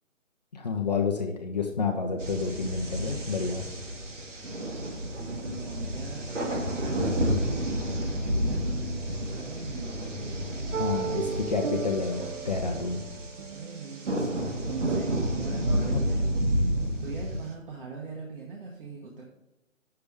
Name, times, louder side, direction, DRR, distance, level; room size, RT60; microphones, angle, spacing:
voice 1, 0.5-3.7 10.7-13.0, left 5 dB, 30° left, 2 dB, 0.7 m, -29 dB
sound 1, 2.2-17.5, equal, 60° right, 1.8 m, -30 dB
voice 2, 5.0-10.0 13.5-16.4 17.0-19.2, right 4 dB, 40° right, -2 dB, 1.3 m, -41 dB
sound 2, 10.7-17.4, right 6 dB, 85° right, 0.6 m, -37 dB
8.2 x 6.8 x 3.5 m, 0.91 s
figure-of-eight pair, 155°, 40 cm